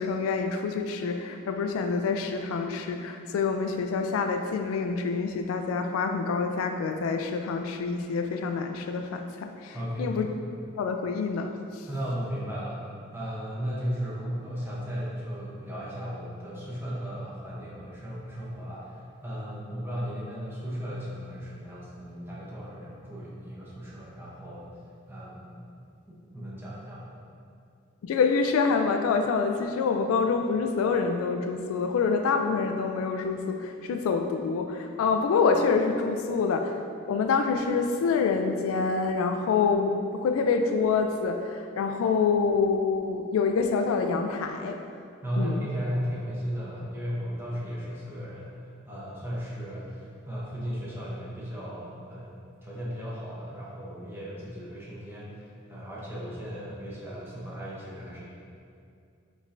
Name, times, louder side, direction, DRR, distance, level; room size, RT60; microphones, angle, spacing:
voice 1, 0.0-10.3 10.8-11.5 28.0-36.8 37.1-44.8 45.4-45.6, left 5 dB, 85° left, 6 dB, 0.3 m, -26 dB
voice 2, 9.7-10.2 11.9-12.8 13.1-24.7 25.1-25.6 26.1-27.1 45.2-58.3, equal, 10° right, -7 dB, 0.7 m, -35 dB
5.2 x 3.2 x 2.5 m, 2.4 s
head